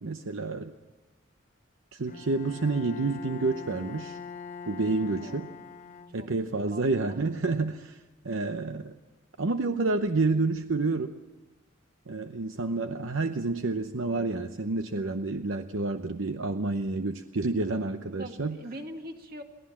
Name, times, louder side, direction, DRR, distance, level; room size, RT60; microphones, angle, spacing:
voice 1, 0.0-0.7 1.9-4.2 4.7-5.5 6.1-8.9 9.4-11.1 12.1-18.6, right 3 dB, 75° right, 8 dB, 0.8 m, -29 dB
Bowed string instrument, 2.1-6.6, left 5 dB, 40° left, 0.7 m, -43 dB
voice 2, 5.1-6.3 6.7-7.3 18.2-19.4, right 1 dB, 45° right, 4 dB, 2.0 m, -43 dB
23.0 x 17.0 x 7.3 m, 1.1 s
head